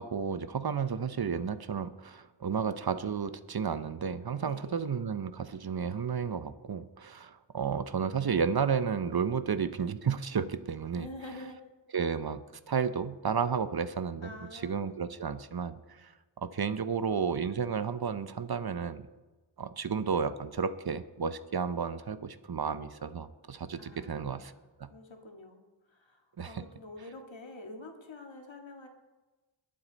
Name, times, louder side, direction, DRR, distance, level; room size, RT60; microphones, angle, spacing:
voice 1, 0.0-11.1 11.9-16.1 16.4-19.1 19.6-24.5 24.8-24.9 26.4-26.6, right 6 dB, 55° right, 13 dB, 0.7 m, -32 dB
voice 2, 4.4-4.9 10.9-11.6 14.2-14.8 23.8-24.6 24.9-28.9, left 2 dB, 80° left, 3 dB, 1.9 m, -47 dB
21.0 x 7.7 x 4.0 m, 1.2 s
wide cardioid pair, 55°, 45 cm